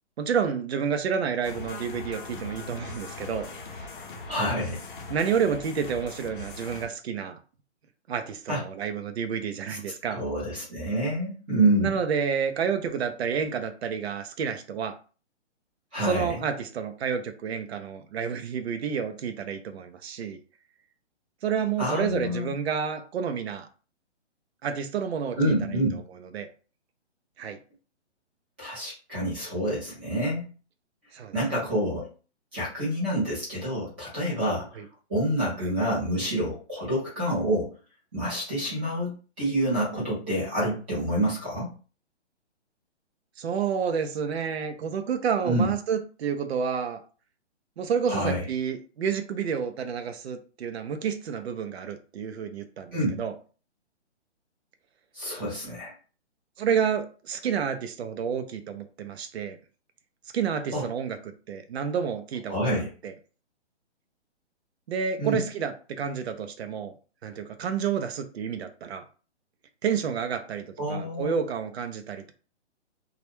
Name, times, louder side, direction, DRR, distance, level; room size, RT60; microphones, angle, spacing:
voice 1, 0.2-3.5 3.7-3.9 5.1-7.4 8.1-10.2 11.8-15.0 16.0-20.4 21.4-23.7 24.6-25.5 25.9-26.0 26.3-26.5 27.4-27.6 31.1-31.6 34.8-34.9 43.4-47.0 47.8-53.3 56.6-59.6 60.3-63.1 64.9-66.9 67.2-69.0 69.8-72.3, right 7 dB, 65° right, 8 dB, 0.5 m, -30 dB
sound 1, 1.4-6.9, left 3 dB, 45° left, 0.6 m, -40 dB
voice 2, 4.3-4.8 8.5-8.6 9.7-9.8 10.1-11.9 15.9-16.4 21.8-22.5 25.4-26.0 28.6-30.5 31.3-32.1 32.5-34.8 35.1-37.7 38.1-41.7 45.4-45.7 48.1-48.4 52.9-53.2 55.1-55.9 60.7-60.9 62.5-62.9 65.2-65.4 70.8-71.4, right 1 dB, 10° right, -7 dB, 0.5 m, -27 dB
2.3 x 2.1 x 2.9 m, 0.37 s
hypercardioid pair, 160°, 35 cm